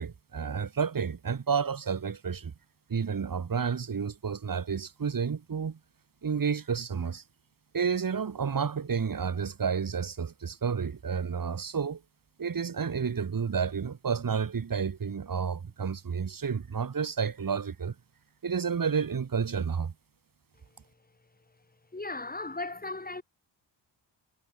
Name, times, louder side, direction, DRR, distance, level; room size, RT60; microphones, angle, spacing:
voice 1, 0.0-2.5 2.9-5.8 6.2-7.2 7.7-12.0 12.4-17.9 18.4-19.9, right 6 dB, 45° right, 4.2 m, -30 dB
voice 2, 21.9-23.2, left 2 dB, 20° left, 6.7 m, -36 dB
wide cardioid pair, 135°, 46 cm